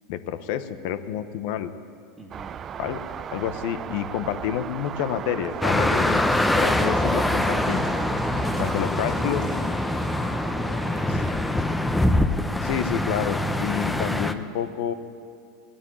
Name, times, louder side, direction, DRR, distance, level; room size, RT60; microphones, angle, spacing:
voice 1, 0.1-1.7 2.8-3.0 3.3-6.2 6.6-7.8 8.6-9.4 12.6-14.9, left 10 dB, 70° left, 11 dB, 0.9 m, -29 dB
voice 2, 2.2-2.6 7.5-7.7 8.5-9.9 10.9-11.6, right 2 dB, 20° right, -2 dB, 1.7 m, -43 dB
sound 1, 2.3-8.8, right 8 dB, 35° right, 0.4 m, -36 dB
sound 2, 5.4-11.3, right 5 dB, 50° right, 2.1 m, -42 dB
sound 3, 5.6-14.3, left 1 dB, 5° left, 0.8 m, -24 dB
18.0 x 8.7 x 8.9 m, 2.4 s
hypercardioid pair, 105°, 0 cm